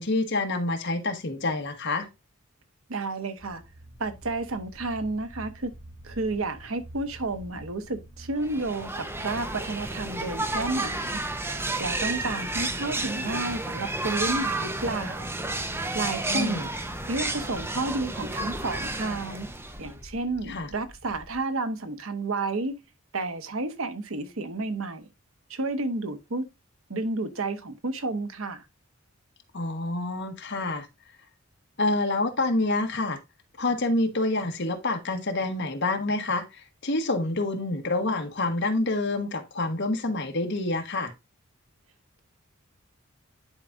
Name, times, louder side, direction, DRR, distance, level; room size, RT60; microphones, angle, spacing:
voice 1, 0.0-2.1 16.3-16.7 20.5-20.7 29.5-30.9 31.8-33.2 33.6-41.1, left 2 dB, 60° left, 1.4 m, -27 dB
voice 2, 2.9-3.6 4.0-5.7 6.0-11.2 11.8-15.3 15.9-16.7 17.1-19.5 19.8-22.8 23.1-25.1 25.5-26.5 26.9-28.6, right 2 dB, 80° right, 1.1 m, -31 dB
sound 1, 3.4-11.1 14.9-21.4, equal, 5° left, 3.3 m, -49 dB
sound 2, 8.4-20.0, right 2 dB, 10° right, 0.7 m, -31 dB
10.5 x 4.8 x 2.6 m
head